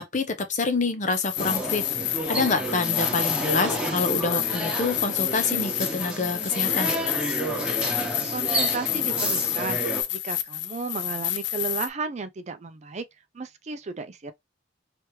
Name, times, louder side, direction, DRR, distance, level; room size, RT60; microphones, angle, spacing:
voice 1, 0.0-6.9, left 3 dB, 45° left, 0.8 m, -27 dB
sound 1, 1.1-11.9, left 14 dB, 75° left, 0.4 m, -29 dB
sound 2, 1.4-10.0, right 1 dB, 5° right, 1.1 m, -30 dB
voice 2, 8.3-9.8 10.1-13.0 13.3-14.3, right 4 dB, 40° right, 0.5 m, -33 dB
3.3 x 3.1 x 3.1 m
head